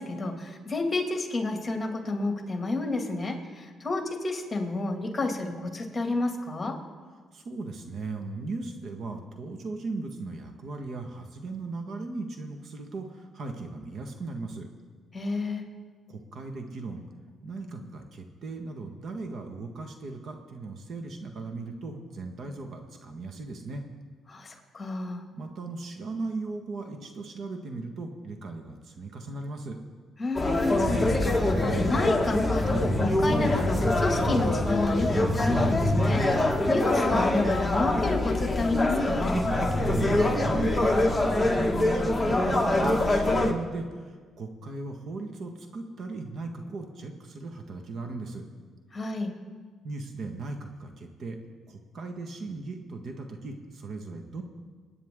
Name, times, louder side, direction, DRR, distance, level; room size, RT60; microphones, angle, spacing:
voice 1, 0.0-6.7 15.1-15.6 24.3-25.2 30.2-39.4 48.9-49.3, left 2 dB, 25° left, 3 dB, 2.4 m, -30 dB
voice 2, 7.3-14.7 16.1-17.0 17.4-23.9 25.3-29.8 39.8-48.4 49.8-51.4 51.7-54.4, right 3 dB, 60° right, 4 dB, 1.6 m, -37 dB
sound 1, 30.4-43.5, left 1 dB, 10° left, 1.6 m, -24 dB
28.0 x 9.5 x 3.8 m, 1.5 s
cardioid pair, 90°, 0 cm